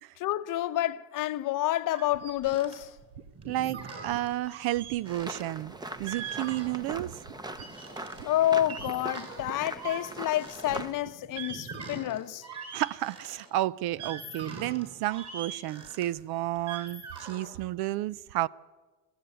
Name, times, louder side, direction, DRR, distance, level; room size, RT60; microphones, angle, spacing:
voice 1, 0.2-2.9 8.2-12.5, left 13 dB, 45° left, 0.9 m, -29 dB
sound 1, 1.9-2.8 3.0-3.1 3.3-7.1 7.4-13.4 13.9-17.5, right 5 dB, 35° right, 6.9 m, -42 dB
sound 2, 2.1-5.4 5.7-6.3 6.6-8.3 8.8-9.0 9.4-9.9 10.7-10.9, right 8 dB, 85° right, 1.5 m, -47 dB
voice 2, 3.5-5.7 6.0-7.2 12.7-18.5, right 15 dB, 55° right, 0.5 m, -31 dB
sound 3, 5.1-10.9, right 1 dB, 10° right, 0.8 m, -41 dB
21.5 x 15.0 x 9.1 m
cardioid pair, 130°, 46 cm